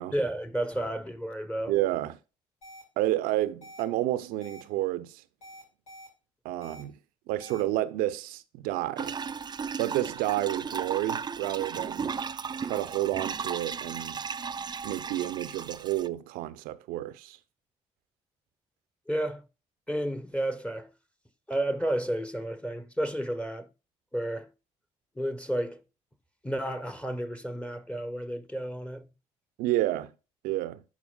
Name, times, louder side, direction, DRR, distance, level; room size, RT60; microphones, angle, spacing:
voice 1, 0.1-1.7 19.1-19.4 19.9-20.9 21.5-23.7 24.1-24.5 25.2-25.8 26.4-29.1, right 1 dB, 10° left, 1.0 m, -31 dB
voice 2, 1.7-2.2 3.0-5.2 6.4-7.0 7.3-9.2 9.8-12.2 12.6-14.2 14.8-17.4 29.6-30.1 30.4-30.8, right 15 dB, 75° right, 0.6 m, -30 dB
sound 1, 2.6-2.8 3.6-3.8 4.4-4.6 5.4-6.1 6.6-6.8 7.4-7.6, equal, 85° left, 3.2 m, -47 dB
sound 2, 9.0-16.1, right 6 dB, 30° right, 0.4 m, -35 dB
11.0 x 4.3 x 2.3 m
hypercardioid pair, 45°, 15 cm